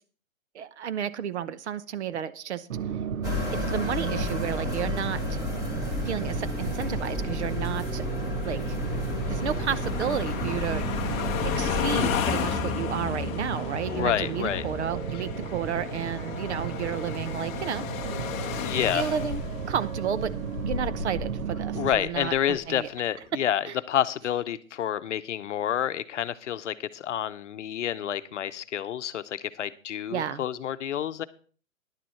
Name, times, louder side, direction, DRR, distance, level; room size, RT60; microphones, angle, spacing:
voice 1, 0.5-2.7 3.5-5.4 6.0-8.1 8.4-8.8 9.3-11.1 11.6-17.8 18.9-19.4 19.7-20.3 20.6-22.9 23.7-23.8 30.1-30.4, right 8 dB, 55° right, 15 dB, 0.9 m, -32 dB
sound 1, 2.7-21.9, right 8 dB, 85° right, 0.9 m, -35 dB
sound 2, 3.2-12.3, left 2 dB, 10° right, 1.8 m, -32 dB
sound 3, 4.5-22.7, left 9 dB, 15° left, 0.8 m, -34 dB
voice 2, 13.9-14.7 15.1-15.2 18.6-19.1 21.7-31.2, left 10 dB, 60° left, 12 dB, 0.8 m, -29 dB
11.0 x 7.5 x 5.6 m, 0.41 s
hypercardioid pair, 155°, 40 cm